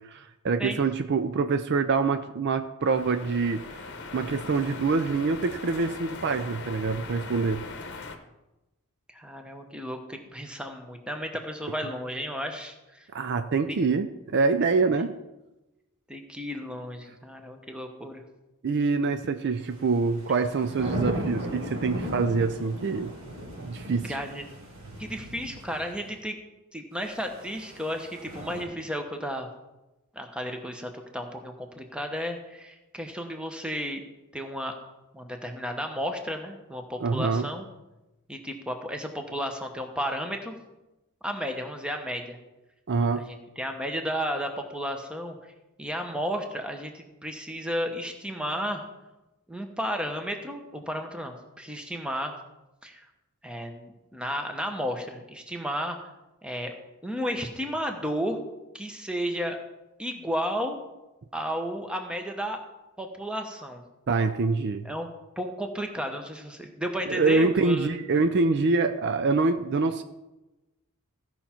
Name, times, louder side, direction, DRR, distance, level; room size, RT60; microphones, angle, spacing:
voice 1, 0.1-3.6 4.1-7.6 13.1-15.1 18.6-23.1 23.6-24.2 37.0-37.5 42.9-43.3 64.1-64.9 67.1-70.0, right 4 dB, 50° right, 9 dB, 0.4 m, -25 dB
sound 1, 2.8-8.2, left 3 dB, 50° left, 0.9 m, -40 dB
voice 2, 9.1-13.1 13.7-13.8 15.0-15.1 16.1-18.2 24.1-24.4 25.0-26.4 26.7-29.5 30.1-34.0 34.3-34.8 35.1-37.7 38.3-40.6 41.2-42.4 43.1-45.4 45.8-48.8 49.5-52.4 52.8-53.0 53.4-56.0 56.4-56.7 57.0-58.4 58.7-59.6 60.0-60.8 61.3-62.6 63.0-63.8 64.8-65.1 65.4-67.9, equal, 5° right, 4 dB, 0.9 m, -33 dB
sound 2, 19.7-26.0 27.0-28.6, equal, 70° right, 3.3 m, -37 dB
15.5 x 5.8 x 4.4 m, 1.0 s
head